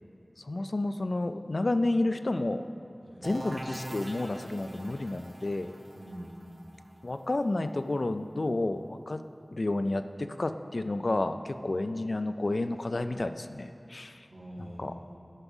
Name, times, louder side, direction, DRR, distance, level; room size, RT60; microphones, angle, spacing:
voice 1, 0.4-2.6 3.2-5.7 7.0-9.2 9.5-14.3 14.8-14.9, left 2 dB, 70° left, 9 dB, 0.3 m, -30 dB
sound 1, 3.2-8.8, right 1 dB, 40° right, 0.9 m, -44 dB
voice 2, 5.9-6.6 14.3-15.2, equal, 70° right, -6 dB, 2.1 m, -45 dB
9.7 x 5.4 x 6.0 m, 2.9 s
wide cardioid pair, 50°, 0 cm